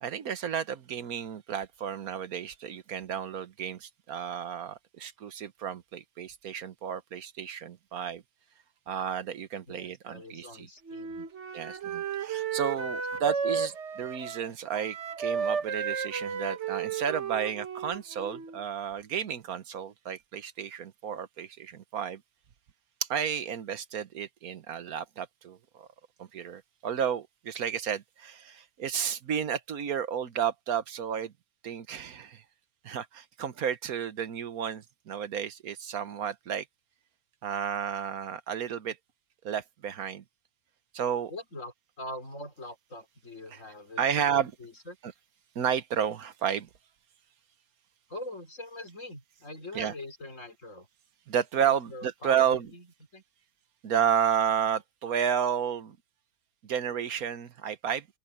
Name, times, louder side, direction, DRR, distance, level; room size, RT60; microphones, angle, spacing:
voice 1, 0.0-8.2 8.9-10.7 11.2-11.3 11.5-22.2 23.0-25.9 26.2-31.3 31.6-32.4 32.8-36.7 37.4-39.0 39.4-40.2 40.9-41.3 43.5-43.6 44.0-44.5 45.0-45.1 45.5-46.7 49.7-49.9 51.3-52.7 53.8-56.0 56.6-58.1, right 8 dB, 85° right, 1.6 m, -32 dB
voice 2, 9.7-11.2 12.7-13.3 41.3-44.3 44.6-45.0 48.1-50.9 51.6-52.9 53.1-53.2, left 1 dB, 60° left, 4.9 m, -43 dB
Wind instrument woodwind instrument, 10.9-18.6, right 6 dB, 55° right, 1.4 m, -33 dB
open air
omnidirectional pair, 1.5 m